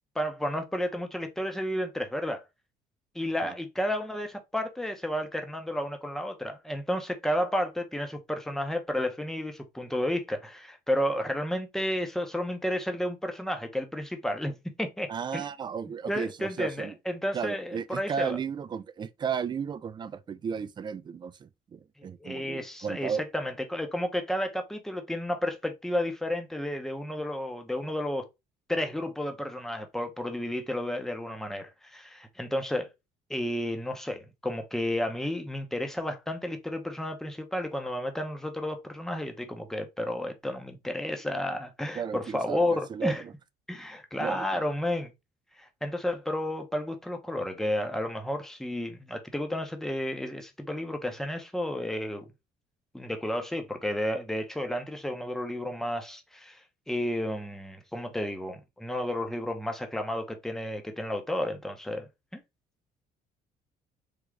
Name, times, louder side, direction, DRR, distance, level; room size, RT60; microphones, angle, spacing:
voice 1, 0.1-2.4 3.1-15.1 15.3-15.4 16.1-18.4 22.0-28.3 28.7-32.9 33.3-43.2 43.7-45.1 45.6-52.2 52.9-62.4, left 1 dB, 5° left, 0.7 m, -32 dB
voice 2, 15.1-16.9 17.3-23.2 41.9-43.3 44.2-44.6, right 6 dB, 25° right, 0.3 m, -34 dB
3.6 x 2.3 x 3.1 m
cardioid pair, 110°, 17 cm